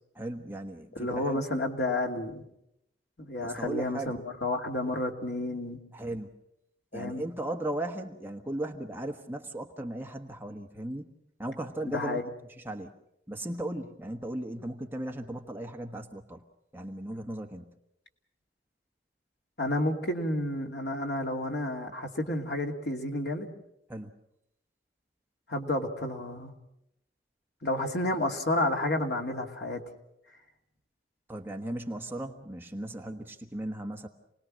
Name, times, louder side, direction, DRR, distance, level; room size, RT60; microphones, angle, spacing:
voice 1, 0.1-1.4 3.4-4.1 5.9-6.3 6.9-11.1 11.4-12.2 12.6-12.9 13.3-16.4 16.7-17.7 23.9-24.1 31.3-34.1, right 1 dB, 10° right, 3 dB, 1.3 m, -37 dB
voice 2, 0.9-2.4 3.2-5.8 6.9-7.2 11.8-12.2 19.6-23.5 25.5-26.5 27.6-29.8, left 1 dB, 75° left, 3 dB, 2.5 m, -31 dB
28.5 x 20.0 x 6.3 m, 0.81 s
head